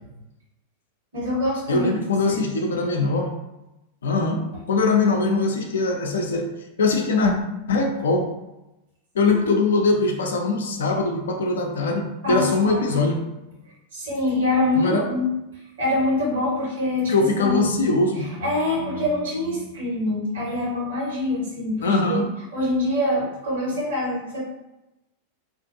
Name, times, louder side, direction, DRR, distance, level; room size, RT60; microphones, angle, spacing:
voice 1, 1.1-2.0 2.3-2.4 9.3-9.6 12.2-13.0 13.9-15.3 15.8-17.9 18.2-22.3 22.5-24.4, left 1 dB, 65° right, -5 dB, 1.3 m, -25 dB
voice 2, 1.7-3.3 4.0-6.5 6.8-7.3 7.7-8.3 9.1-13.2 14.7-15.1 17.1-18.2 21.8-22.3, left 3 dB, 65° left, 3 dB, 0.4 m, -22 dB
2.6 x 2.5 x 2.6 m, 0.94 s
figure-of-eight pair, 90°, 0 cm